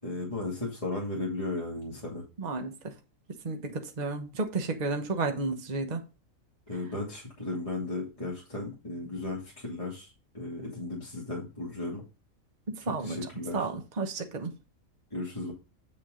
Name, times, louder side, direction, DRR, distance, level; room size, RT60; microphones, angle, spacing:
voice 1, 0.0-2.2 6.7-12.0 13.0-13.7 15.1-15.5, left 2 dB, 20° left, 2.5 m, -35 dB
voice 2, 2.4-2.9 3.4-6.1 12.7-13.2 13.5-14.6, right 3 dB, 30° right, 1.1 m, -32 dB
8.6 x 5.9 x 3.7 m
omnidirectional pair, 1.5 m